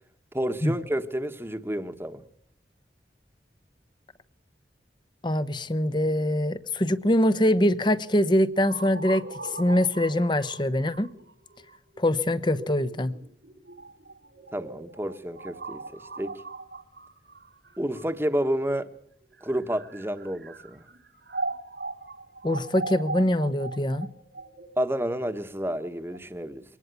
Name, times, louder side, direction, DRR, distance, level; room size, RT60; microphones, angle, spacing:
voice 1, 0.3-2.2 14.5-16.4 17.8-18.9 19.4-20.8 24.8-26.6, right 1 dB, 15° right, 1.3 m, -30 dB
voice 2, 5.2-9.2 9.6-11.1 12.0-13.1 22.4-24.1, left 1 dB, 25° left, 1.0 m, -23 dB
sound 1, 8.6-18.5 19.2-26.2, right 3 dB, 75° right, 2.9 m, -39 dB
23.5 x 19.5 x 8.3 m
head